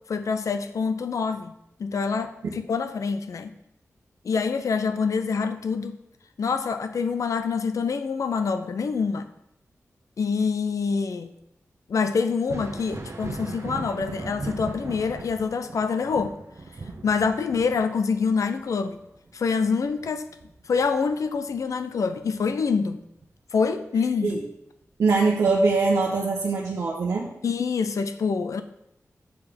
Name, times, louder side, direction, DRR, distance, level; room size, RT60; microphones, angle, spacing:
voice 1, 0.1-1.5 1.8-2.4 2.7-3.5 4.2-6.0 6.4-9.3 10.2-11.3 11.9-16.4 17.0-19.0 19.3-20.3 20.7-23.0 23.5-24.4 27.4-28.6, left 5 dB, 80° left, 9 dB, 0.6 m, -26 dB
Thunder, 12.3-21.7 22.0-23.3 24.8-24.9 25.7-25.9, right 3 dB, 60° right, 1.0 m, -39 dB
voice 2, 25.0-27.3, right 3 dB, 90° right, -4 dB, 1.0 m, -22 dB
6.7 x 4.8 x 5.2 m, 0.81 s
cardioid pair, 50°, 5 cm